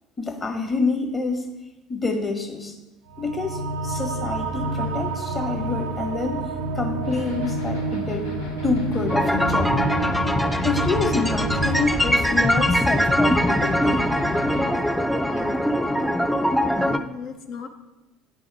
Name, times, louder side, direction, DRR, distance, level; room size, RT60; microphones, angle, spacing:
voice 1, 0.2-1.5 1.9-2.7 3.2-8.3 8.6-9.8 10.6-14.1, left 3 dB, 25° left, 3 dB, 1.4 m, -27 dB
sound 1, 3.1-14.0, right 3 dB, 70° right, 0.5 m, -30 dB
sound 2, 7.0-14.7, left 3 dB, 75° left, 1.0 m, -36 dB
sound 3, 9.1-17.0, equal, 5° left, 0.4 m, -22 dB
voice 2, 15.2-16.1 16.7-17.7, left 6 dB, 50° left, 4 dB, 0.6 m, -36 dB
9.8 x 3.5 x 4.8 m, 1.0 s
figure-of-eight pair, 60°, 0 cm